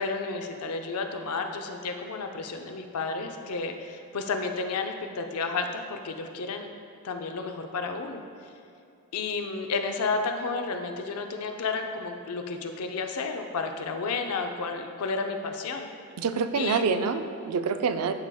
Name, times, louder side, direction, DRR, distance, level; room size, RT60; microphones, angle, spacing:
voice 1, 0.0-6.7 7.0-8.2 9.1-15.9 16.5-17.0, left 4 dB, 85° left, 5 dB, 0.5 m, -32 dB
voice 2, 16.2-18.1, right 5 dB, 85° right, 9 dB, 0.4 m, -26 dB
10.5 x 4.9 x 2.3 m, 2.6 s
head